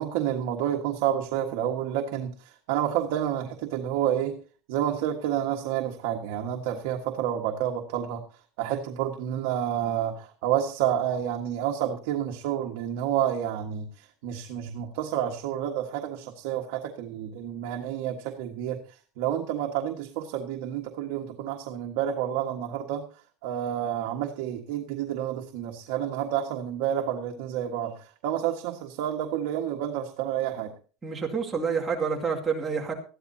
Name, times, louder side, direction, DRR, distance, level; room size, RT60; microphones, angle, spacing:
voice 1, 0.0-4.3 4.7-8.2 8.6-18.8 19.2-23.0 23.4-30.7, right 10 dB, 65° right, 2 dB, 1.5 m, -29 dB
voice 2, 31.0-32.9, right 5 dB, 10° right, -1 dB, 2.2 m, -28 dB
19.5 x 13.5 x 2.8 m, 0.38 s
cardioid pair, 175°, 0 cm